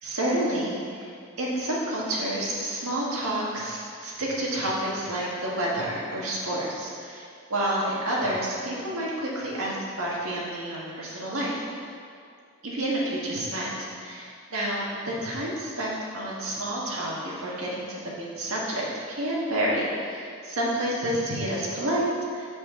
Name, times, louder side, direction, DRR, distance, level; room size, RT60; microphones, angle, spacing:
voice 1, 0.0-1.1 1.4-7.2 7.5-11.6 12.6-22.5, right 1 dB, 75° right, -5 dB, 1.6 m, -29 dB
7.6 x 6.2 x 3.7 m, 2.3 s
head